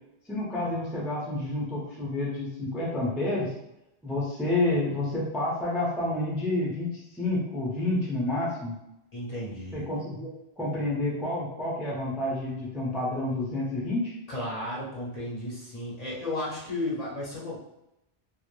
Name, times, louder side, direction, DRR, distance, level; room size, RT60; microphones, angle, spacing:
voice 1, 0.3-3.5 4.0-8.8 9.7-10.3 10.6-14.1, left 2 dB, ahead, -6 dB, 0.4 m, -29 dB
voice 2, 9.1-9.9 14.3-17.6, left 1 dB, 45° left, -6 dB, 0.7 m, -34 dB
2.1 x 2.0 x 2.9 m, 0.87 s
omnidirectional pair, 1.1 m